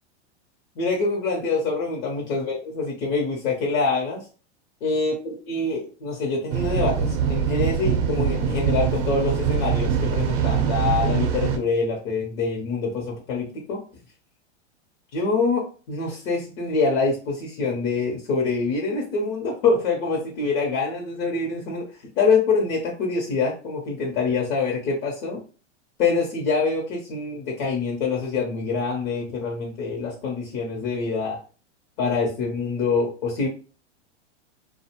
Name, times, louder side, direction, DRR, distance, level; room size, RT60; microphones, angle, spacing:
voice 1, 0.8-4.2 4.8-13.8 15.1-21.8 22.2-25.4 26.0-31.4 32.0-33.5, left 4 dB, 55° left, 0 dB, 0.9 m, -25 dB
sound 1, 6.5-11.6, right 7 dB, 45° right, 0.6 m, -23 dB
2.4 x 2.3 x 2.9 m, 0.37 s
hypercardioid pair, 140°, 35 cm